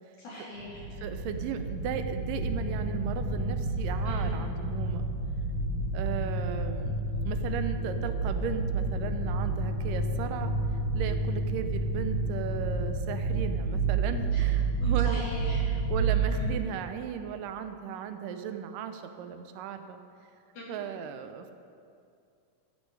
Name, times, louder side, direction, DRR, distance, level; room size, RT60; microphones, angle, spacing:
voice 1, 0.2-0.8 4.0-4.4 14.8-15.6 16.3-16.5 20.5-20.8, left 1 dB, 65° left, -7 dB, 4.8 m, -40 dB
sound 1, 0.6-16.5, right 3 dB, 80° left, 3.9 m, -30 dB
voice 2, 1.0-5.0 5.9-15.2 15.9-20.0 20.7-21.5, right 8 dB, 85° right, 8 dB, 2.3 m, -36 dB
15.0 x 12.5 x 3.3 m, 2.4 s
omnidirectional pair, 3.8 m